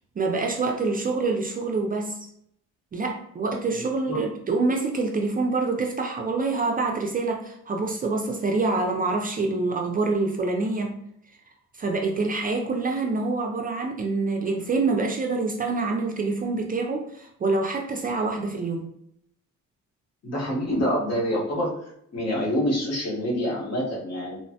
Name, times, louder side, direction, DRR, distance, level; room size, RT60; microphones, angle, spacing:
voice 1, 0.2-2.2 2.9-11.0 11.8-18.9, right 3 dB, 30° right, 2 dB, 0.4 m, -26 dB
voice 2, 20.2-21.7 22.1-24.4, equal, 55° left, -3 dB, 1.1 m, -26 dB
3.0 x 2.0 x 2.7 m, 0.71 s
cardioid pair, 90°, 30 cm